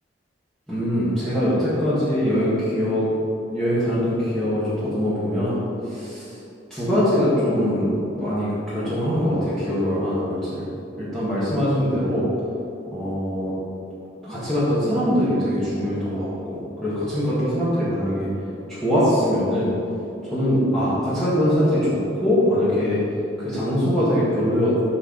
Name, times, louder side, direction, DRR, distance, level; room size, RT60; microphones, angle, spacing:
voice 1, 0.7-3.1 3.5-5.6 5.9-6.2 6.7-10.7 11.0-12.3 12.9-13.5 14.2-18.3 18.7-19.7 20.2-23.0 23.4-24.7, equal, ahead, -12 dB, 1.7 m, -22 dB
12.5 x 4.5 x 3.9 m, 2.7 s
head